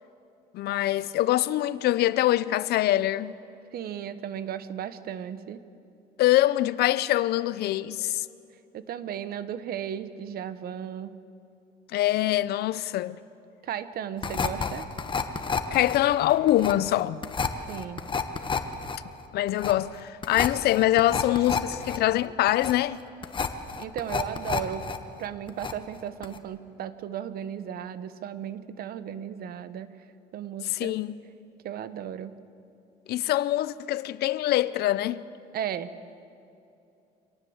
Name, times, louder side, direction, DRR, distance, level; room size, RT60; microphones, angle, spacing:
voice 1, 0.5-3.3 6.2-8.3 11.9-13.2 15.7-17.2 19.3-23.0 30.7-31.1 33.1-35.2, left 14 dB, 75° left, 0.7 m, -24 dB
voice 2, 3.7-5.6 8.7-11.2 13.6-14.9 17.7-18.0 23.8-24.9 25.2-30.0 30.3-30.9 31.6-32.4 35.5-35.9, right 9 dB, 65° right, 1.2 m, -35 dB
sound 1, 14.2-25.0 25.2-26.0 26.2-26.4, left 5 dB, 30° left, 1.4 m, -30 dB
25.5 x 18.0 x 8.0 m
cardioid pair, 110°, 17 cm